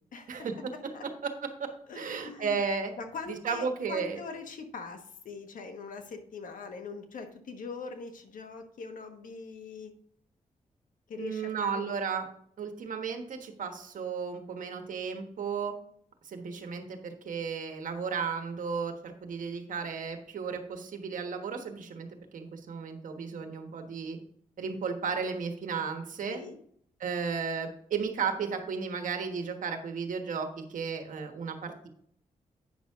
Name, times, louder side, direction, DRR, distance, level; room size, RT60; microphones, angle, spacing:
voice 1, 0.3-0.7 1.2-1.3 1.6-1.7 1.9-2.9 3.3-4.2 11.2-12.3 12.6-15.7 16.2-24.2 24.6-26.4 27.0-31.9, right 5 dB, 75° right, 5 dB, 1.4 m, -34 dB
voice 2, 1.9-2.6 3.0-9.9 11.1-11.9 26.2-26.6, left 4 dB, 80° left, 6 dB, 1.2 m, -42 dB
9.1 x 6.3 x 3.6 m, 0.65 s
cardioid pair, 85°, 14 cm